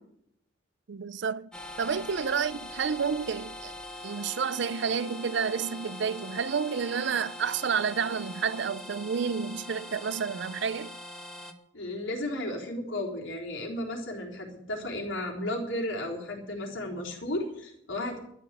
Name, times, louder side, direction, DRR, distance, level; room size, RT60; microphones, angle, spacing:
voice 1, 0.9-1.5 1.8-3.7 4.0-10.9, right 6 dB, 65° right, 0.5 m, -30 dB
sound 1, 1.5-11.5, left 1 dB, 5° left, 1.1 m, -42 dB
voice 2, 11.7-18.2, left 1 dB, 90° left, 3.8 m, -34 dB
12.5 x 9.7 x 7.6 m
head